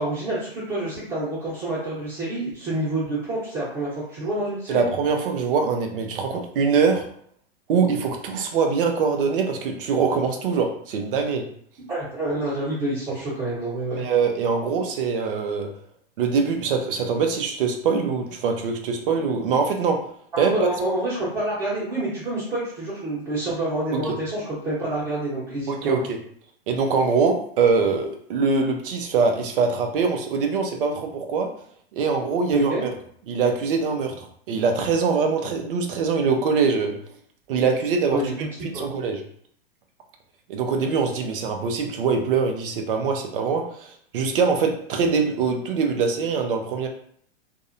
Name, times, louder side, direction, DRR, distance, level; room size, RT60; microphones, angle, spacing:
voice 1, 0.0-4.9 11.9-14.0 20.3-26.0 32.5-32.8 38.1-38.9, right 1 dB, 25° right, -10 dB, 1.1 m, -28 dB
voice 2, 4.7-7.0 7.7-11.4 13.9-15.7 16.2-20.0 20.4-20.5 23.9-24.2 25.7-26.0 26.7-31.5 31.9-32.9 33.3-36.9 37.5-38.2 38.6-39.2 40.5-46.9, right 5 dB, 60° right, 3 dB, 0.6 m, -23 dB
2.6 x 2.1 x 2.6 m, 0.63 s
hypercardioid pair, 105°, 31 cm